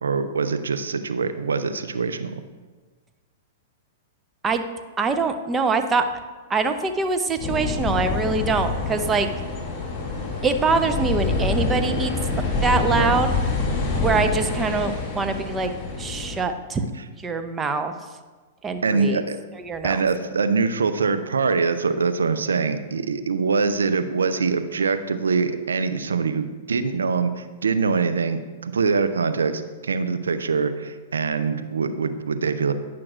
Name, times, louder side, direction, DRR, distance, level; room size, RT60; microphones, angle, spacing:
voice 1, 0.0-2.4 12.9-13.1 18.8-19.4 19.8-32.7, right 4 dB, 80° right, 9 dB, 0.5 m, -24 dB
voice 2, 5.0-6.2 6.5-9.3 10.4-12.1 12.6-13.3 14.0-15.7 16.0-16.8 17.2-17.9 18.6-19.2 19.5-20.0, right 4 dB, 20° right, 8 dB, 0.6 m, -24 dB
sound 1, 7.4-16.4, left 3 dB, 30° left, 2.3 m, -26 dB
10.0 x 5.9 x 2.5 m, 1.3 s
hypercardioid pair, 110°, 0 cm